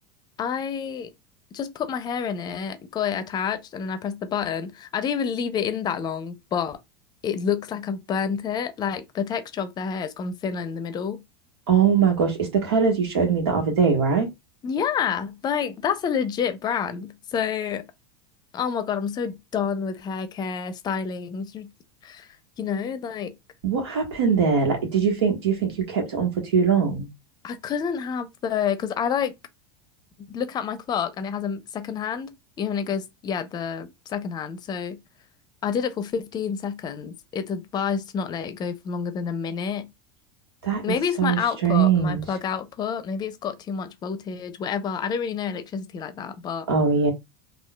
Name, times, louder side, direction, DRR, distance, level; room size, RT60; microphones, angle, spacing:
voice 1, 0.4-1.1 1.5-6.8 7.2-11.2 14.6-17.9 18.5-21.7 22.0-22.3 22.6-23.4 27.4-29.3 30.3-35.0 35.6-39.9 40.8-46.7, left 7 dB, 30° left, 0.5 m, -28 dB
voice 2, 11.7-14.3 23.6-27.1 40.6-40.8 41.2-42.2 46.7-47.1, right 6 dB, 90° right, 1.2 m, -21 dB
3.7 x 2.3 x 2.2 m
supercardioid pair, 110°, 13 cm